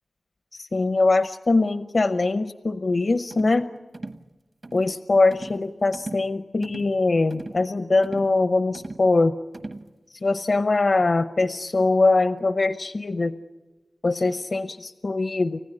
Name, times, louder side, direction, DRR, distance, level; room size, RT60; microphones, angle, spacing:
voice 1, 0.5-3.7 4.7-9.4 10.2-13.3 14.0-15.6, left 3 dB, 60° left, 10 dB, 0.7 m, -22 dB
sound 1, 3.3-3.6 3.9-4.2 4.6-4.9 5.3-5.6 5.9-6.3 6.6-6.9 7.3-7.6 8.0-8.4 8.7-9.1 9.5-9.9, right 2 dB, 55° right, 1.3 m, -38 dB
30.0 x 15.5 x 9.9 m, 1.2 s
wide cardioid pair, 80°, 0 cm